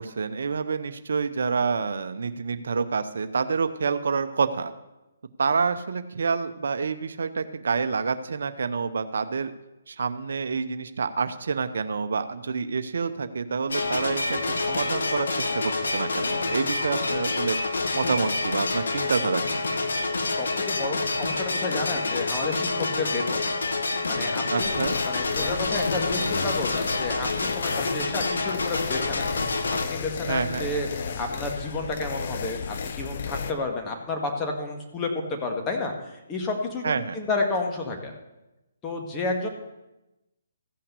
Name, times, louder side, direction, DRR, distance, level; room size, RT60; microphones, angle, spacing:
voice 1, 0.0-4.7 5.4-9.5 9.9-17.6 17.9-19.6 24.5-25.0 30.3-30.7 36.8-37.2, right 5 dB, 70° right, 10 dB, 0.8 m, -28 dB
sound 1, 13.7-29.8, left 3 dB, 75° left, 1.4 m, -27 dB
voice 2, 20.3-23.4 24.1-29.3 29.7-38.1 38.8-39.5, left 3 dB, 20° left, 2 dB, 1.8 m, -31 dB
sound 2, 24.6-33.5, left 6 dB, 50° left, 0.9 m, -33 dB
15.0 x 5.7 x 6.9 m, 0.98 s
hypercardioid pair, 145°, 0 cm